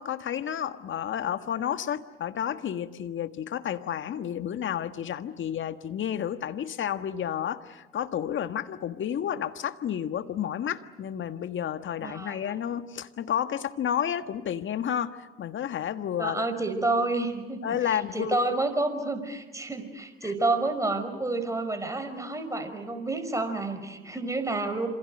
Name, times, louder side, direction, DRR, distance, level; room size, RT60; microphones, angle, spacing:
voice 1, 0.0-16.4 17.6-18.4 20.2-20.3, left 9 dB, 40° left, 10 dB, 1.5 m, -31 dB
voice 2, 12.0-12.5 16.2-24.9, right 2 dB, 10° right, 7 dB, 5.3 m, -29 dB
27.5 x 26.5 x 6.6 m, 1.2 s
hypercardioid pair, 65°, 29 cm